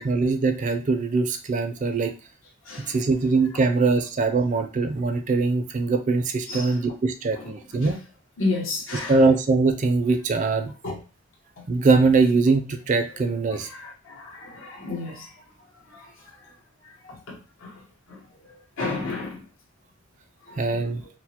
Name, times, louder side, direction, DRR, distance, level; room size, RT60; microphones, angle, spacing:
voice 1, 0.0-2.1 2.9-8.0 9.1-10.7 11.7-13.7 20.6-21.0, right 3 dB, 40° right, 0.4 m, -22 dB
voice 2, 2.6-3.0 6.5-6.8 7.3-7.5 7.8-7.9 8.4-9.2 10.8-11.0 11.6-11.7 13.5-15.3 15.9-16.1 16.8-17.8 18.1-18.2 18.8-19.4 20.5-21.1, left 3 dB, 80° left, 1.1 m, -32 dB
4.3 x 2.0 x 2.8 m
head